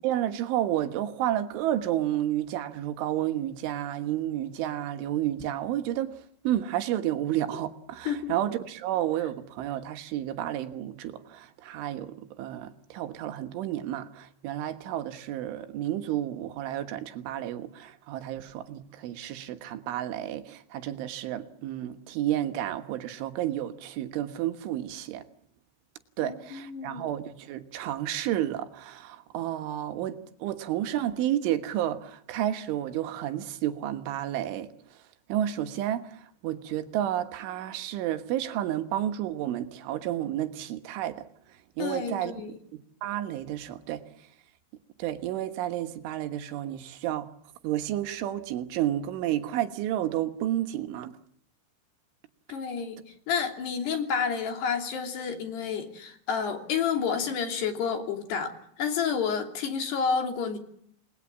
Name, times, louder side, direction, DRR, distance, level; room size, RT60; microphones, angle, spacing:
voice 1, 0.0-6.2 6.5-25.2 26.2-34.7 35.3-41.2 41.8-42.6 43.0-44.0 45.0-47.3 47.6-51.1, right 12 dB, 80° right, 3.7 m, -31 dB
voice 2, 26.2-27.0 41.8-42.6 52.5-53.0 53.3-60.6, left 6 dB, 60° left, 4.8 m, -30 dB
29.0 x 21.0 x 7.3 m
omnidirectional pair, 5.6 m